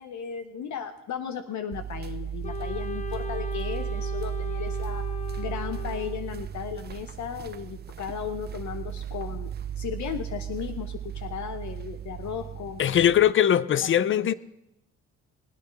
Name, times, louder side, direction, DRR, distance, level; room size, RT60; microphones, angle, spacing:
voice 1, 0.0-5.0 5.4-13.0 14.0-14.3, left 8 dB, 70° left, 0.8 m, -36 dB
sound 1, 1.7-13.3, right 9 dB, 35° right, 0.4 m, -35 dB
Wind instrument woodwind instrument, 2.4-6.4, left 7 dB, 25° left, 0.9 m, -39 dB
voice 2, 12.8-14.3, left 10 dB, 40° left, 0.5 m, -21 dB
20.5 x 9.0 x 5.1 m
cardioid pair, 90°, 30 cm